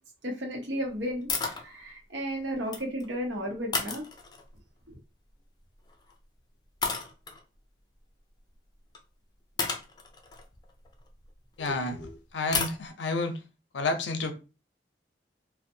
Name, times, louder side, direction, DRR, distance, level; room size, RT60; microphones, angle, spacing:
voice 1, 0.2-4.0 4.9-5.0, equal, 85° right, 0.8 m, -34 dB
sound 1, 1.3-1.7 2.5-3.1 3.7-4.6 5.9-6.1 6.8-7.4 8.9-9.0 9.6-11.7 12.5-12.8, left 5 dB, 25° left, 0.4 m, -32 dB
voice 2, 11.6-13.4 13.7-14.3, left 3 dB, 80° left, 0.5 m, -30 dB
2.5 x 2.1 x 2.6 m
head